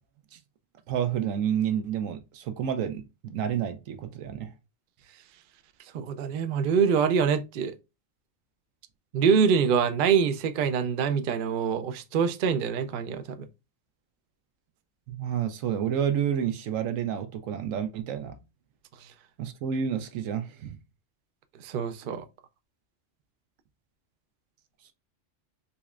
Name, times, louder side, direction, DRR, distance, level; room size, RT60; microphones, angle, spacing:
voice 1, 0.9-4.5 15.1-18.4 19.4-20.8, right 9 dB, 80° right, 1.0 m, -29 dB
voice 2, 5.9-7.7 9.1-13.5 21.6-22.2, right 6 dB, 60° right, 0.6 m, -25 dB
4.1 x 3.0 x 2.3 m
omnidirectional pair, 1.4 m